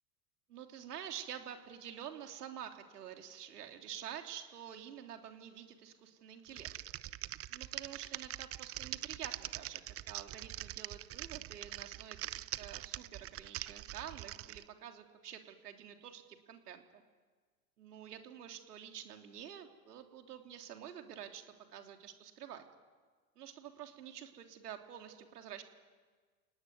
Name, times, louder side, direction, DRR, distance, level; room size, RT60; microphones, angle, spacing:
voice 1, 0.5-6.7 7.5-9.8 10.1-17.0 17.8-22.6 23.4-25.6, right 9 dB, 80° right, 5 dB, 3.4 m, -48 dB
Typing, 6.5-14.6, right 14 dB, 30° right, 0.8 m, -43 dB
29.5 x 19.5 x 9.4 m, 1.5 s
hypercardioid pair, 100°, 46 cm